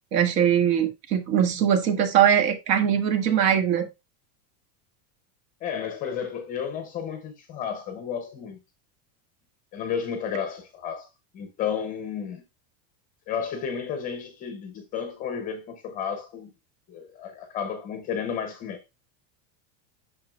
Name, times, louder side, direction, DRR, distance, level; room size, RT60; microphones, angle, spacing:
voice 1, 0.1-3.9, right 9 dB, 75° right, 1.9 m, -21 dB
voice 2, 5.6-8.6 9.7-11.1 11.3-12.4 13.3-16.5 16.9-18.8, left 7 dB, 20° left, 0.5 m, -32 dB
8.8 x 6.3 x 2.3 m
supercardioid pair, 175°, 48 cm